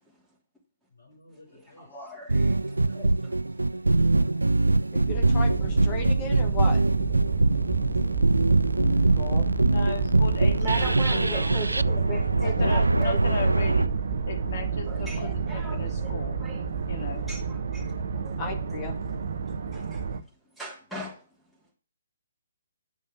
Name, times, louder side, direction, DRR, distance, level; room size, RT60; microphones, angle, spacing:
voice 1, 0.9-2.1 2.5-4.5 4.8-5.1, left 2 dB, 80° left, 4.7 m, -57 dB
voice 2, 1.5-3.3 10.6-13.7 14.9-16.1 16.4-16.6 17.3-17.8 18.2-18.4 19.7-20.0 20.6-21.2, right 2 dB, ahead, 3.0 m, -38 dB
sound 1, 2.3-13.9, right 2 dB, 85° right, 0.4 m, -23 dB
voice 3, 4.9-6.8 9.2-9.4 12.6-12.7 18.4-19.0, left 4 dB, 30° left, 2.2 m, -35 dB
sound 2, 5.0-20.2, right 5 dB, 60° right, 1.0 m, -29 dB
voice 4, 9.7-11.5 12.4-13.9 14.3-16.4 16.9-17.3, left 4 dB, 50° left, 2.6 m, -36 dB
9.6 x 5.4 x 7.0 m
figure-of-eight pair, 135°, 0 cm